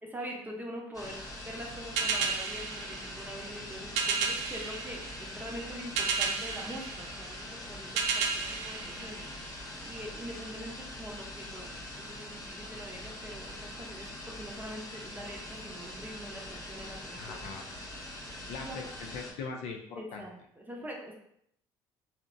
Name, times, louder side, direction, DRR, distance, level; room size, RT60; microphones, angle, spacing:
voice 1, 0.0-7.9 8.1-17.7 18.3-18.8 20.0-21.1, equal, 15° right, 0 dB, 0.7 m, -44 dB
sound 1, 0.9-19.3, left 1 dB, 30° left, 0.8 m, -43 dB
sound 2, 2.0-9.8, right 5 dB, 75° right, 0.4 m, -34 dB
voice 2, 17.1-17.7 18.5-20.2, left 5 dB, 70° left, 2 dB, 0.4 m, -41 dB
2.6 x 2.1 x 2.5 m, 0.72 s
hypercardioid pair, 65°, 11 cm